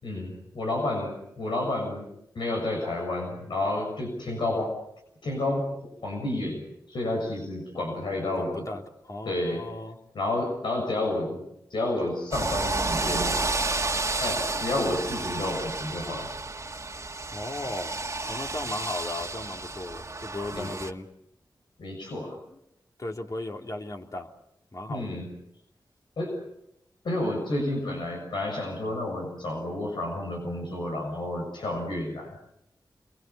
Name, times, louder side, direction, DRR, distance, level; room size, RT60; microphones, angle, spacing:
voice 1, 0.0-2.1 2.3-4.7 5.2-5.8 6.0-8.6 9.2-9.7 10.1-11.4 11.7-13.4 14.2-16.3 20.5-20.7 21.8-22.4 24.9-25.3 26.2-26.4 27.0-32.4, left 1 dB, 90° left, 1 dB, 6.6 m, -30 dB
voice 2, 8.3-10.0 17.3-21.1 22.5-22.6 23.0-24.3 24.7-25.1, left 2 dB, 45° left, 2 dB, 3.4 m, -36 dB
sound 1, 12.3-20.9, right 3 dB, 40° right, 1.8 m, -31 dB
29.0 x 23.0 x 7.0 m, 0.80 s
cardioid pair, 50°, 8 cm